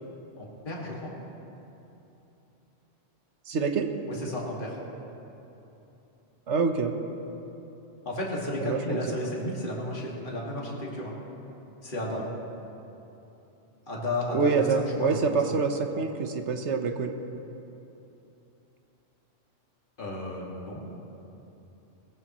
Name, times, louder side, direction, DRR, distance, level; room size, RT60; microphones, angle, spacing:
voice 1, 0.4-1.1 4.1-4.8 8.0-11.1 11.8-12.3 13.9-15.2 15.4-15.5 20.0-20.8, left 1 dB, 45° left, -4 dB, 2.2 m, -33 dB
voice 2, 3.5-4.0 6.5-6.9 8.6-9.0 14.3-17.1, right 5 dB, 70° right, 6 dB, 1.2 m, -26 dB
20.0 x 15.5 x 3.0 m, 3.0 s
omnidirectional pair, 1.2 m